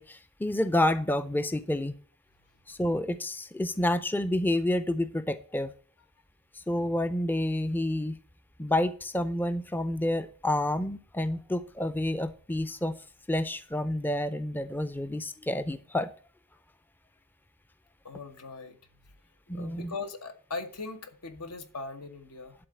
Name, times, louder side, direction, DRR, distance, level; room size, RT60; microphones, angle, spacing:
voice 1, 0.0-1.9 2.7-5.7 6.5-8.2 8.6-13.0 13.3-16.1 19.5-19.9, left 1 dB, 10° left, 0.4 m, -29 dB
voice 2, 18.0-18.8 19.5-22.5, left 3 dB, 85° left, 1.4 m, -39 dB
11.0 x 4.0 x 7.7 m
head